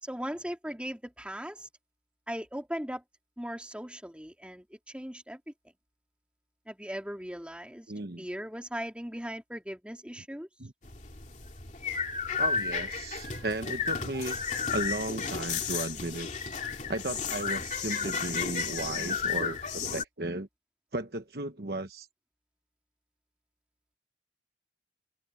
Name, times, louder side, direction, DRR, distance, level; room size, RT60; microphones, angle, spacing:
voice 1, 0.0-1.7 2.3-3.0 3.4-5.4 6.7-7.9 8.2-10.5, equal, 5° right, 4.0 m, -38 dB
voice 2, 7.9-8.2 10.6-10.7 12.4-14.4 14.7-16.3 16.9-20.5 20.9-22.1, right 2 dB, 60° right, 1.2 m, -35 dB
sound 1, 10.8-20.0, left 6 dB, 45° left, 2.7 m, -33 dB
open air
head